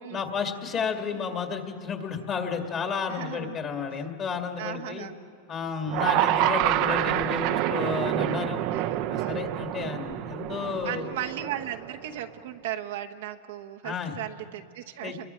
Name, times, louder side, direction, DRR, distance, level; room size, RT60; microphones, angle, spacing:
voice 1, 0.1-5.1 5.5-8.6 9.1-11.1 13.8-14.1 15.0-15.3, left 6 dB, 30° left, 4 dB, 2.1 m, -32 dB
voice 2, 3.1-3.6 3.9-4.0 4.6-5.2 8.7-9.5 10.8-15.3, right 11 dB, 75° right, 5 dB, 1.0 m, -36 dB
sound 1, 5.9-12.1, right 13 dB, 50° right, 0.7 m, -27 dB
30.0 x 23.0 x 4.5 m, 2.4 s
supercardioid pair, 130°, 0 cm